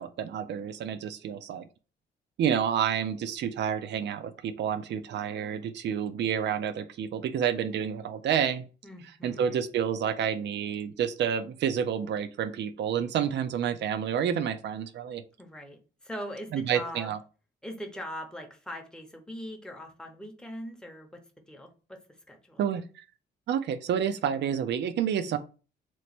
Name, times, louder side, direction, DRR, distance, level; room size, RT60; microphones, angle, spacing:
voice 1, 0.0-1.7 2.4-8.6 9.2-15.2 16.5-17.2 22.6-23.0 23.5-25.4, right 8 dB, 60° right, 11 dB, 0.5 m, -29 dB
voice 2, 8.8-9.6 15.4-17.1 17.6-22.6, equal, 5° left, 3 dB, 0.8 m, -41 dB
3.0 x 2.1 x 4.1 m, 0.35 s
cardioid pair, 90°, 20 cm